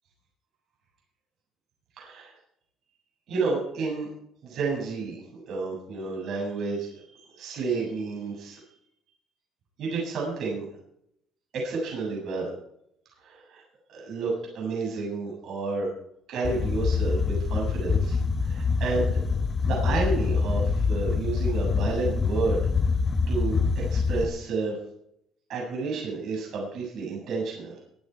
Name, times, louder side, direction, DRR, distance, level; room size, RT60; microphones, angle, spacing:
voice 1, 2.0-2.3 3.3-4.1 4.4-8.6 9.8-10.7 11.5-12.5 13.2-13.6 13.9-15.9 16.3-19.2 19.6-22.6 23.3-24.8 25.5-27.7, right 4 dB, 65° right, -2 dB, 7.7 m, -31 dB
sound 1, 16.4-24.2, left 5 dB, 35° left, 1.2 m, -25 dB
24.5 x 8.9 x 4.7 m, 0.73 s
cardioid pair, 110°, 0 cm